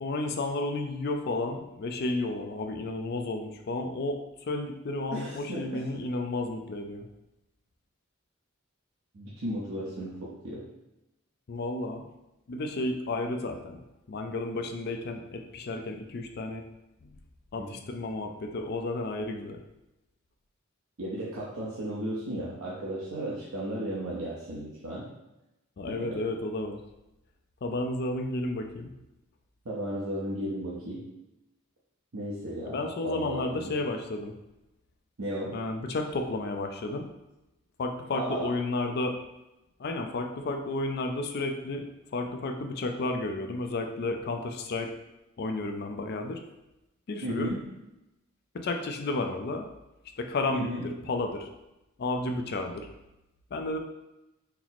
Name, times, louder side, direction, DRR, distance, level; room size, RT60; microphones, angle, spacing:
voice 1, 0.0-7.1 11.5-12.0 12.5-13.8 14.1-16.6 17.0-17.1 17.5-19.6 25.8-26.8 27.6-28.9 32.6-34.3 35.5-37.1 37.8-39.2 39.8-44.9 45.4-46.4 47.1-47.5 48.5-49.7 50.2-51.5 52.0-52.9 53.5-53.8, left 2 dB, 50° left, 5 dB, 0.4 m, -32 dB
voice 2, 5.1-6.0 9.1-10.6 17.6-17.8 21.0-25.1 25.9-26.2 29.6-31.0 32.1-33.8 35.2-35.6 38.1-38.5 47.2-47.6 50.5-50.8, right 1 dB, 85° right, -7 dB, 0.8 m, -35 dB
4.4 x 2.0 x 4.0 m, 0.94 s
head